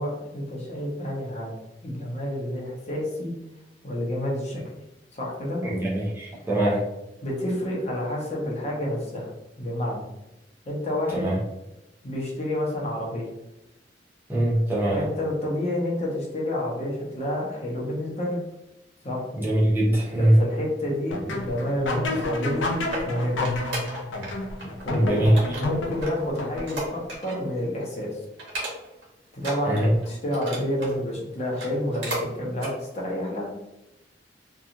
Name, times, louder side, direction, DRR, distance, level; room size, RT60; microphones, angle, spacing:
voice 1, 0.0-3.3 3.8-4.6 5.1-5.6 7.2-9.3 9.6-10.0 10.7-11.3 12.0-13.3 14.9-18.4 19.0-19.2 20.2-22.7 23.1-23.4 24.8-28.1 29.3-33.5, left 1 dB, 40° left, -3 dB, 0.7 m, -29 dB
voice 2, 5.6-6.8 11.2-11.4 14.3-15.0 19.3-20.4 24.9-25.4 29.7-29.9, right 1 dB, 10° right, -6 dB, 0.6 m, -22 dB
sound 1, 21.1-27.0, left 2 dB, 85° left, 0.4 m, -30 dB
sound 2, 22.6-24.3 24.6-25.0 25.4-27.5 27.8-28.0 28.4-29.0 29.4-31.0 31.4-32.3 32.6-32.8 33.3-33.4, right 1 dB, 90° right, 1.0 m, -34 dB
2.8 x 2.3 x 2.5 m, 0.93 s
head